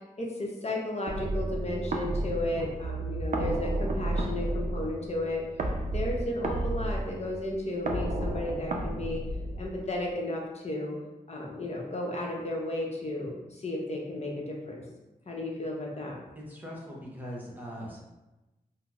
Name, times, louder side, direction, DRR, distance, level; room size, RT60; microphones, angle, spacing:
voice 1, 0.2-5.4 5.9-9.2 9.6-11.0 11.3-14.8 15.3-16.2, left 1 dB, 45° left, -1 dB, 0.7 m, -33 dB
sound 1, 1.1-10.0, right 2 dB, 55° right, 0.4 m, -32 dB
voice 2, 16.4-18.0, equal, 10° right, -4 dB, 0.9 m, -41 dB
3.7 x 2.0 x 2.3 m, 1.0 s
cardioid pair, 50°, 15 cm